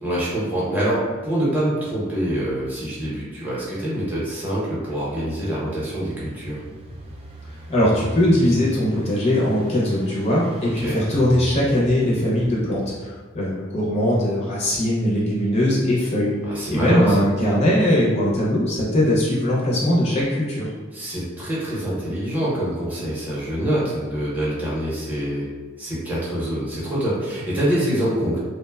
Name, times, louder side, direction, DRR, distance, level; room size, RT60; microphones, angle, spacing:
voice 1, 0.0-6.6 10.8-11.0 16.5-17.2 20.9-25.4 25.8-28.4, right 1 dB, 10° right, -8 dB, 0.7 m, -25 dB
Engine, 5.5-13.4, equal, 30° right, 0.3 m, -37 dB
voice 2, 7.7-16.3 16.7-20.7, left 1 dB, 30° left, -6 dB, 0.5 m, -20 dB
2.9 x 2.1 x 2.2 m, 1.4 s
head